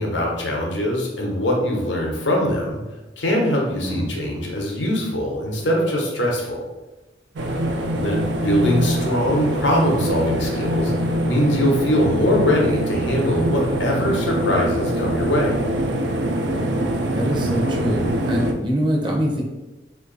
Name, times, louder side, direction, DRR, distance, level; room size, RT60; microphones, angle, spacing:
voice 1, 0.0-2.8 3.2-6.7 7.9-15.6, left 1 dB, 90° left, -1 dB, 0.8 m, -22 dB
voice 2, 3.8-4.2 17.1-19.4, equal, 25° right, -1 dB, 0.5 m, -24 dB
sound 1, 7.4-18.5, right 1 dB, 80° right, 0.4 m, -24 dB
2.6 x 2.5 x 3.8 m, 1.1 s
head